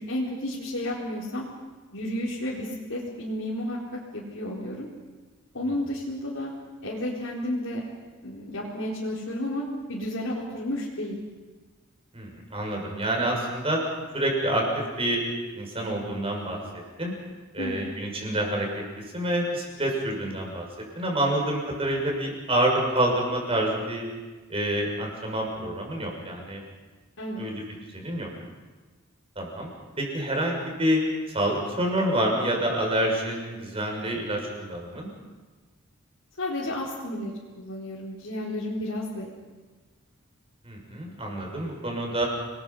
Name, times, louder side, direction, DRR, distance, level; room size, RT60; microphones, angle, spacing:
voice 1, 0.0-1.4 1.9-3.8 4.1-4.9 5.5-6.5 6.8-7.8 8.2-11.2 17.6-17.8 27.2-27.4 36.4-39.3, left 1 dB, 75° left, -7 dB, 4.4 m, -32 dB
voice 2, 12.1-13.8 14.1-15.2 15.5-17.1 17.5-20.6 20.9-24.0 24.5-26.6 27.4-27.6 27.9-28.3 29.4-29.7 30.0-31.0 31.3-35.1 40.6-42.2, right 1 dB, 30° right, 0 dB, 6.3 m, -27 dB
29.5 x 21.0 x 5.6 m, 1.3 s
head